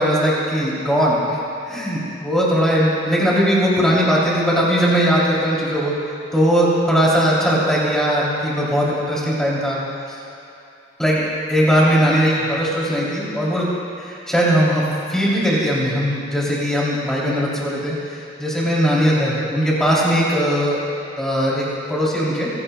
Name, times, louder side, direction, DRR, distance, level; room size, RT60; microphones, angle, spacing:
voice 1, 0.0-1.4 1.7-5.9 6.3-9.8 11.0-11.2 11.5-13.7 14.0-14.8 15.1-20.8 21.2-22.5, equal, 5° left, -7 dB, 3.0 m, -19 dB
21.0 x 17.0 x 2.3 m, 2.8 s
head